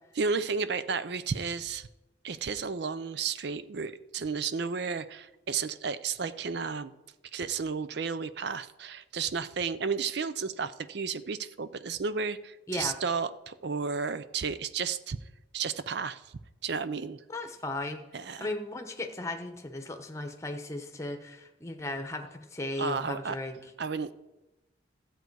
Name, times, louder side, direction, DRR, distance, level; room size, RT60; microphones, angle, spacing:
voice 1, 0.2-1.9 2.2-6.9 7.3-15.2 15.5-16.3 16.6-17.2 18.1-18.5 22.8-23.4 23.8-24.1, right 5 dB, 60° right, 14 dB, 0.5 m, -32 dB
voice 2, 12.7-13.0 17.3-18.0 18.4-23.6, left 2 dB, 15° left, 6 dB, 1.0 m, -36 dB
13.0 x 8.0 x 4.7 m, 1.0 s
head